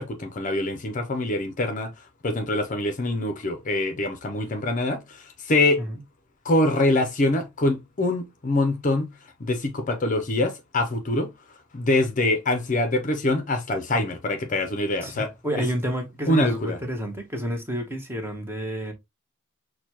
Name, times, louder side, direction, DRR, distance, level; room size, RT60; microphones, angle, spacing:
voice 1, 0.0-1.9 2.2-5.8 6.4-9.1 9.4-11.3 11.7-15.3 16.3-16.8, left 2 dB, 40° left, 0.6 m, -24 dB
voice 2, 15.0-18.9, equal, 10° right, 1.0 m, -30 dB
6.5 x 2.2 x 2.8 m
head